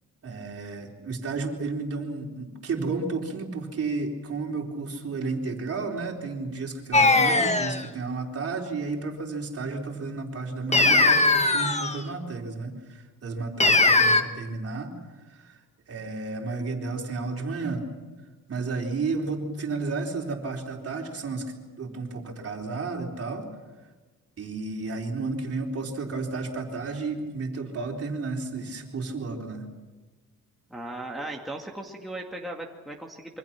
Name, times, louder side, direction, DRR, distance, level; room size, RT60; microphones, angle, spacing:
voice 1, 0.2-14.9 15.3-15.6 15.9-17.9 18.5-21.5 21.8-23.5 24.4-29.6, right 3 dB, 45° right, 1 dB, 4.1 m, -32 dB
sound 1, 6.9-7.8 10.7-12.0 13.6-14.2, left 3 dB, 20° left, 1.5 m, -20 dB
voice 2, 30.7-33.4, right 1 dB, ahead, -1 dB, 2.3 m, -37 dB
27.5 x 25.0 x 6.1 m, 1.2 s
cardioid pair, 130°, 34 cm